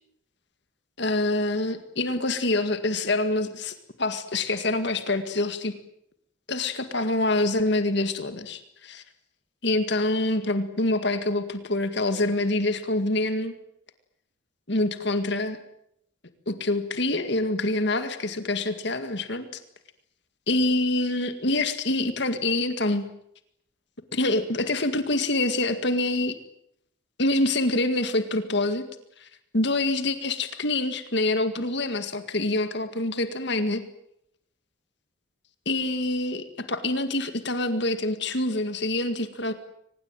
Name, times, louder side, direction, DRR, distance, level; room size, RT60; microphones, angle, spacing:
voice 1, 1.0-5.8 6.5-9.0 9.6-13.5 14.7-15.6 16.5-19.5 20.5-23.1 24.1-26.4 27.2-28.9 29.2-29.3 29.5-33.9 35.7-39.5, left 2 dB, 60° left, 10 dB, 2.0 m, -26 dB
24.0 x 20.0 x 9.1 m, 0.74 s
head